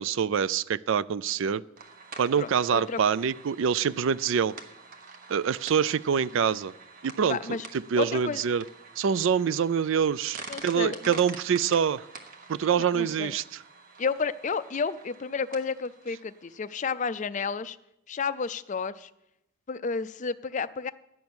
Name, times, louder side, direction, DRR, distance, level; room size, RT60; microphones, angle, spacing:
voice 1, 0.0-1.6 2.2-4.5 5.3-6.7 7.0-7.4 7.7-8.6 9.0-12.1 12.5-13.6, right 7 dB, 60° right, 19 dB, 0.3 m, -25 dB
sound 1, 1.8-17.1, right 4 dB, 40° right, 1.1 m, -47 dB
voice 2, 2.4-3.0 7.3-7.7 8.0-8.4 10.5-11.2 12.9-13.3 14.0-17.8 18.1-19.1 19.7-20.9, left 5 dB, 35° left, 14 dB, 0.4 m, -31 dB
12.0 x 6.2 x 8.5 m, 0.87 s
head